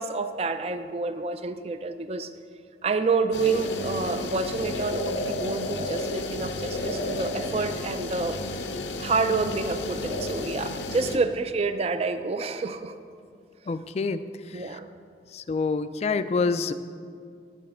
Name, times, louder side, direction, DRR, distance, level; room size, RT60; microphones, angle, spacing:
voice 1, 0.0-2.3 2.8-8.4 9.0-12.9 14.5-14.9, right 4 dB, 35° right, 10 dB, 0.4 m, -28 dB
sound 1, 3.3-11.2, left 2 dB, 85° left, 0.8 m, -32 dB
voice 2, 13.7-14.2 14.5-14.8 15.3-16.7, left 4 dB, 35° left, 12 dB, 0.3 m, -27 dB
9.3 x 9.1 x 4.3 m, 2.2 s
head